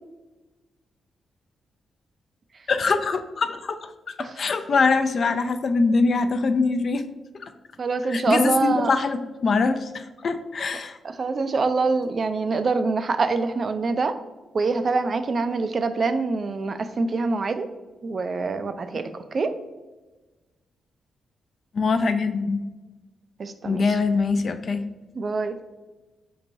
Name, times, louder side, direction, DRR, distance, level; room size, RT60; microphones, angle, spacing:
voice 1, 2.7-7.0 8.1-11.0 21.7-22.6 23.6-24.8, left 4 dB, 55° left, 9 dB, 0.3 m, -23 dB
voice 2, 7.8-9.0 11.0-14.2 14.5-17.7 18.0-19.6 23.4-24.0 25.1-25.6, right 3 dB, 50° right, 10 dB, 0.3 m, -25 dB
4.3 x 3.2 x 2.5 m, 1.2 s
cardioid pair, 70°, 0 cm